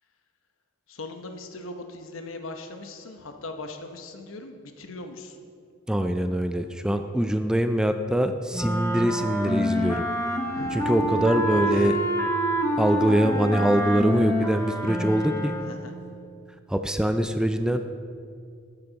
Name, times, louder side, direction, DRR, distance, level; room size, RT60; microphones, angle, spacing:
voice 1, 0.9-5.4 10.5-11.9 15.6-15.9, left 2 dB, 80° left, 5 dB, 1.0 m, -39 dB
voice 2, 5.9-10.0 10.9-12.0 12.8-15.5 16.7-17.8, equal, 5° right, 8 dB, 0.3 m, -23 dB
sound 1, 8.5-15.9, equal, 15° left, 1.1 m, -27 dB
11.5 x 10.0 x 4.0 m, 2.2 s
head